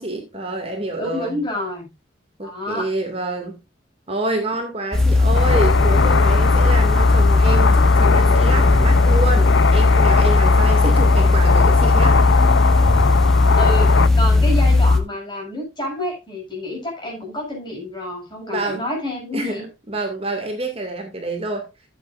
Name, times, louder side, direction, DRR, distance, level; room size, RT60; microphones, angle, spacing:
voice 1, 0.0-1.4 2.4-3.6 4.1-12.2 18.5-18.8 19.3-21.7, right 2 dB, 30° right, 2.2 m, -27 dB
voice 2, 1.0-1.9 2.4-2.9 10.8-11.1 13.5-19.7, left 1 dB, 25° left, 7.0 m, -28 dB
sound 1, 4.9-15.0, left 3 dB, 5° left, 1.4 m, -16 dB
sound 2, 5.3-14.1, left 5 dB, 70° left, 0.6 m, -21 dB
15.0 x 8.3 x 2.5 m
head